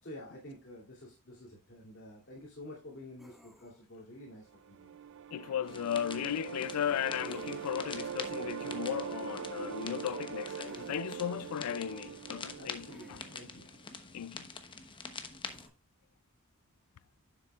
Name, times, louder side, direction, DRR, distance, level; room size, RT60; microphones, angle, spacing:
voice 1, 0.0-5.0 12.6-13.7, left 1 dB, 55° left, 2.8 m, -49 dB
sound 1, 3.2-4.0 7.3-8.1 10.7-11.0 12.9-13.6 15.4-15.7, right 1 dB, ahead, 1.2 m, -58 dB
sound 2, 4.5-13.6, right 8 dB, 60° right, 0.4 m, -42 dB
voice 2, 5.3-13.2 14.1-14.5, left 9 dB, 85° left, 0.3 m, -36 dB
sound 3, 5.7-15.7, left 4 dB, 20° left, 0.9 m, -46 dB
10.5 x 7.3 x 2.4 m
head